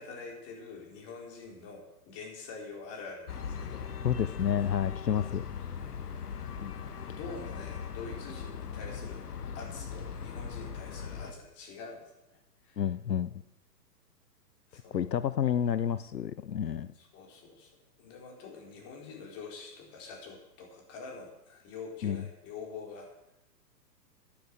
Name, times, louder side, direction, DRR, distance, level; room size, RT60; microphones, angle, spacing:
voice 1, 0.0-3.9 5.7-6.0 7.1-9.3 9.5-12.0 12.3-12.4 12.6-12.8 14.7-15.1 17.0-17.7 18.0-23.1, left 4 dB, 30° left, 1 dB, 3.9 m, -45 dB
sound 1, 3.3-11.3, left 7 dB, 65° left, 1.4 m, -39 dB
voice 2, 4.0-5.4 6.6-6.7 12.8-13.4 14.7-16.9 22.0-22.2, left 8 dB, 80° left, 14 dB, 0.7 m, -30 dB
10.5 x 9.8 x 7.9 m, 0.89 s
figure-of-eight pair, 115°, 49 cm